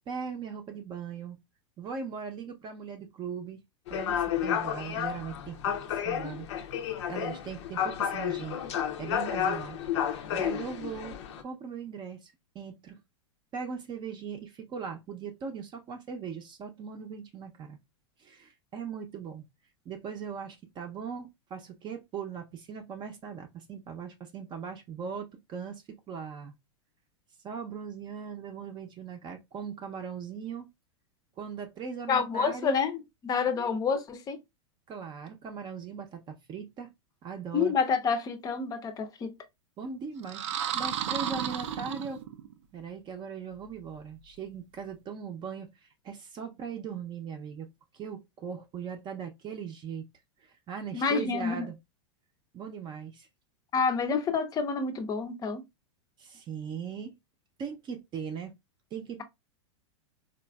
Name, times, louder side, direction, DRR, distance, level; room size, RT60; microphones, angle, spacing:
voice 1, 0.0-1.4 1.8-3.6 3.9-6.5 7.1-8.6 9.0-11.2 11.4-13.0 13.5-17.8 18.2-19.4 19.9-26.5 27.4-30.7 31.4-32.8 33.5-33.8 34.9-36.9 37.2-37.7 39.8-40.4 40.7-42.2 42.7-47.7 47.9-50.1 50.4-51.7 52.5-53.3 56.2-57.1 57.6-58.5 58.9-59.2, right 6 dB, 30° right, 0.6 m, -39 dB
sound 1, 3.9-11.4, left 9 dB, 70° left, 0.6 m, -31 dB
voice 2, 32.1-34.4 37.5-39.3 50.9-51.7 53.7-55.6, left 5 dB, 25° left, 0.6 m, -28 dB
sound 2, 40.2-42.5, right 9 dB, 75° right, 0.5 m, -33 dB
4.0 x 2.5 x 2.2 m
hypercardioid pair, 115°, 15 cm